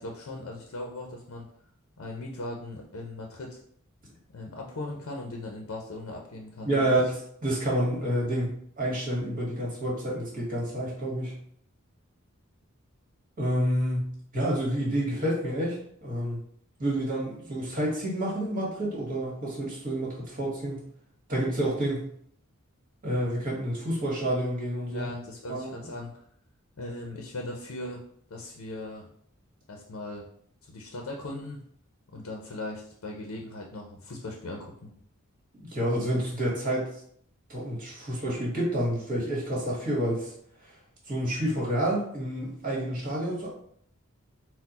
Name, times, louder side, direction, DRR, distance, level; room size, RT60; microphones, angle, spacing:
voice 1, 0.0-1.5 2.0-3.6 4.3-7.0 24.9-26.2 26.8-28.0 28.3-29.1 29.7-30.2 30.6-31.6 32.1-34.9, left 2 dB, 80° left, 0 dB, 0.6 m, -38 dB
voice 2, 6.6-7.2 7.4-11.4 13.4-16.4 16.8-20.8 21.3-22.1 23.0-25.1 25.5-25.7 35.5-37.0 37.5-40.3 41.1-43.5, right 1 dB, 40° right, -4 dB, 1.6 m, -29 dB
4.3 x 2.2 x 4.1 m, 0.65 s
head